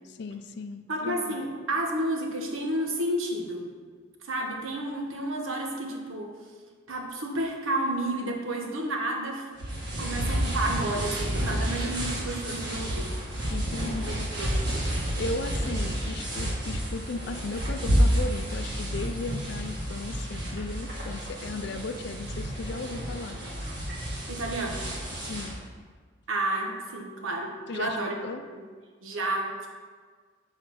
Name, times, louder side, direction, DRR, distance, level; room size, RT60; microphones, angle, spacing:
voice 1, 0.0-1.4 13.5-14.1 15.2-23.4 25.2-25.6 27.7-28.0 28.2-28.4, left 3 dB, 55° left, 9 dB, 0.4 m, -36 dB
voice 2, 0.9-3.7 4.2-6.3 6.9-9.5 10.0-13.1 13.8-14.6 24.2-24.9 26.3-28.1 28.5-28.6 29.0-29.7, right 1 dB, 85° right, 1 dB, 1.1 m, -31 dB
sound 1, 9.6-25.6, equal, 55° right, 1.9 m, -30 dB
6.1 x 4.3 x 6.3 m, 1.5 s
head